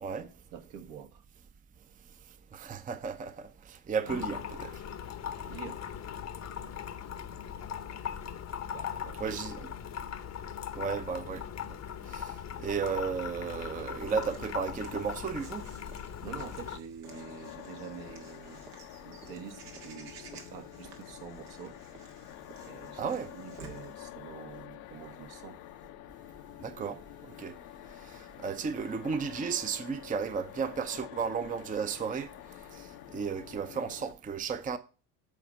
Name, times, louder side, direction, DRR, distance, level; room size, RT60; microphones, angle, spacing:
voice 1, 0.2-1.2 4.0-4.3 5.5-5.9 8.7-9.6 16.2-18.7 19.0-21.8 22.6-25.6 28.4-28.6, right 8 dB, 65° right, 1.4 m, -46 dB
voice 2, 2.5-4.8 9.2-9.6 10.8-11.4 12.1-15.7 23.0-23.3 26.6-27.0 27.4-27.5 28.4-32.3 32.7-32.9 33.1-34.8, right 6 dB, 20° right, 0.6 m, -34 dB
sound 1, 4.1-16.8, left 8 dB, 35° left, 0.8 m, -39 dB
Walk footsteps / Bird vocalization bird call bird song, 14.0-23.9, right 4 dB, 80° right, 1.6 m, -54 dB
sound 2, 17.0-34.1, left 15 dB, 70° left, 0.8 m, -48 dB
8.3 x 4.2 x 6.2 m
hypercardioid pair, 70°, 45 cm